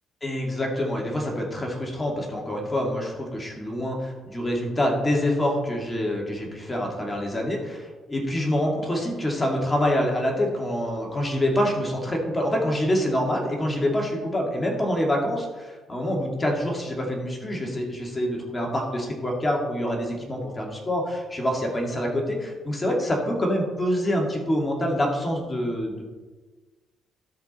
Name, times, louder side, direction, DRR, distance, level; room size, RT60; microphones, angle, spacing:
voice 1, 0.2-26.0, left 1 dB, 20° left, -1 dB, 2.2 m, -26 dB
13.0 x 4.9 x 4.2 m, 1.3 s
cardioid pair, 90°, 0 cm